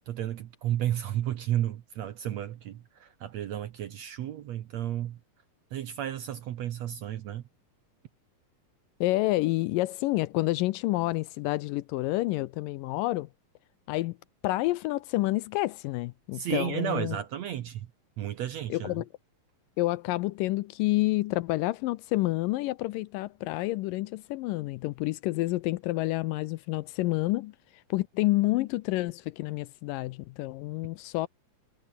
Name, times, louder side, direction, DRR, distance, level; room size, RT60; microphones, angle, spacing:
voice 1, 0.1-5.2 5.7-7.4 16.3-17.9 18.2-18.9, right 11 dB, 65° right, 1.8 m, -32 dB
voice 2, 9.0-13.3 13.9-14.2 14.4-17.2 18.7-19.1 19.8-27.6 27.9-31.3, left 18 dB, 80° left, 2.1 m, -29 dB
omnidirectional pair, 4.2 m